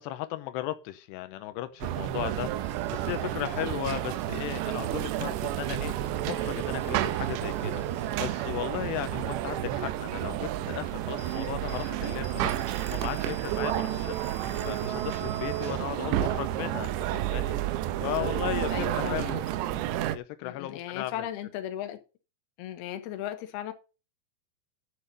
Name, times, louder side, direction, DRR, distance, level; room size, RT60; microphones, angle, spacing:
voice 1, 0.0-12.6 12.9-17.6 18.0-19.5 20.1-21.3, left 14 dB, 90° left, 2.4 m, -36 dB
sound 1, 1.3-19.5, left 5 dB, 55° left, 2.6 m, -55 dB
sound 2, 1.8-20.2, right 13 dB, 85° right, 2.5 m, -31 dB
voice 2, 13.7-14.1 17.9-18.3 18.7-19.3 20.4-22.0 22.6-23.7, left 11 dB, 70° left, 2.6 m, -37 dB
11.0 x 6.5 x 5.4 m
omnidirectional pair, 5.8 m